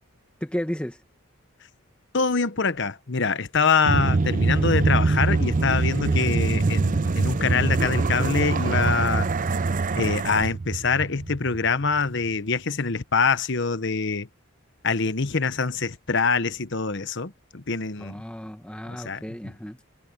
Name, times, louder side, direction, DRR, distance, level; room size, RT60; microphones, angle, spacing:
voice 1, 0.4-1.0 18.0-19.8, equal, 5° left, 1.3 m, -33 dB
voice 2, 2.1-9.3 9.9-14.3 14.8-18.2 18.9-19.2, left 5 dB, 55° left, 1.0 m, -24 dB
sound 1, 3.8-12.0, right 3 dB, 35° right, 0.5 m, -23 dB
head